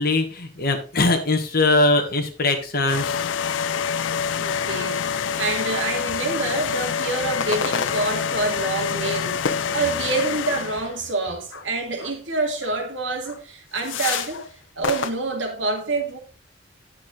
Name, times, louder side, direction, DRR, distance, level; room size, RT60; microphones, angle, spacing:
voice 1, 0.0-3.2 3.7-4.2, left 2 dB, 55° left, 1.4 m, -22 dB
sound 1, 2.9-11.0, left 7 dB, 70° left, 0.4 m, -26 dB
voice 2, 4.4-14.5 14.8-16.2, right 3 dB, 70° right, 2.1 m, -27 dB
sound 2, 6.8-7.0 7.4-8.6 9.4-10.3 11.5-11.7 12.0-12.2 12.6-12.8 13.2-13.4 13.8-14.5 14.8-15.1, left 5 dB, 90° left, 0.9 m, -30 dB
9.5 x 6.5 x 3.8 m
head